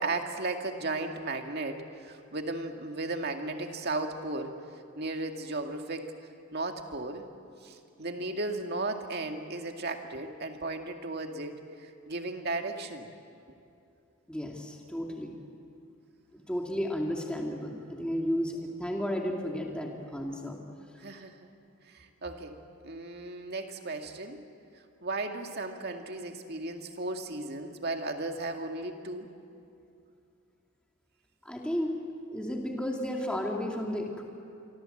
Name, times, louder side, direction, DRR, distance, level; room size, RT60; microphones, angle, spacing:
voice 1, 0.0-4.5 5.0-6.1 6.5-7.3 7.6-13.1 21.0-21.5 21.9-22.5 22.8-24.4 25.0-29.3, right 2 dB, 50° right, 4 dB, 2.1 m, -35 dB
voice 2, 14.3-15.3 16.3-20.6 31.4-32.0 32.3-34.2, equal, 5° left, 0 dB, 2.4 m, -33 dB
28.0 x 24.0 x 7.9 m, 2.6 s
head